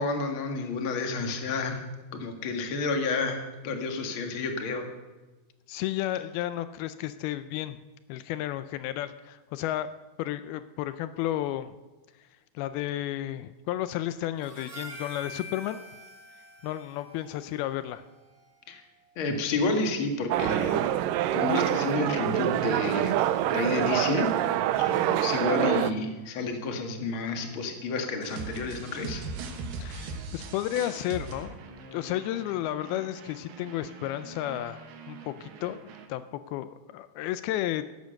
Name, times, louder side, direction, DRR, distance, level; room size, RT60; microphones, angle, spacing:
voice 1, 0.0-1.8 2.1-4.9 18.7-18.8 19.2-20.9 21.3-23.2 23.5-24.3 24.8-29.2, left 3 dB, 45° left, 4 dB, 1.9 m, -30 dB
voice 2, 5.7-7.8 8.1-9.9 10.2-11.8 12.6-15.8 16.6-18.0 24.9-25.2 29.8-31.6 31.9-37.8, left 13 dB, 85° left, 12 dB, 2.5 m, -32 dB
Harmonica, 14.4-18.9, equal, 15° right, 1.5 m, -46 dB
sound 1, 20.3-25.9, right 12 dB, 80° right, 2.1 m, -26 dB
sound 2, 28.2-36.1, right 4 dB, 65° right, 2.9 m, -41 dB
15.5 x 11.5 x 6.5 m, 1.2 s
omnidirectional pair, 4.4 m